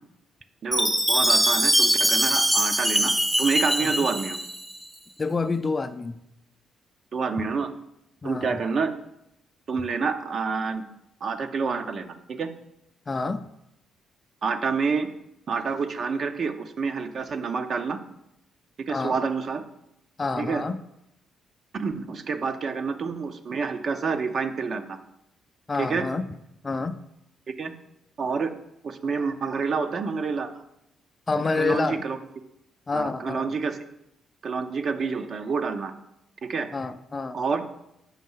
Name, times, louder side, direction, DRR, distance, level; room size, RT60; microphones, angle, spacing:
voice 1, 0.6-4.4 7.1-7.7 8.2-8.9 9.7-10.8 11.2-12.5 14.4-15.1 15.5-18.0 18.9-19.6 20.4-20.6 21.7-25.0 25.8-26.1 27.5-27.7 28.2-28.5 28.8-30.5 31.6-32.2 32.9-33.8 34.4-35.9 36.4-36.7 37.3-37.6, right 5 dB, 50° right, 0.8 m, -28 dB
Chime, 0.7-4.8, equal, 10° right, 0.7 m, -22 dB
voice 2, 5.2-6.2 8.2-8.6 13.1-13.5 18.9-19.2 20.2-20.8 25.7-26.2 26.6-27.0 31.3-32.0 32.9-33.5 36.7-37.4, left 3 dB, 30° left, 0.4 m, -28 dB
7.4 x 5.4 x 5.5 m
cardioid pair, 90°, 0 cm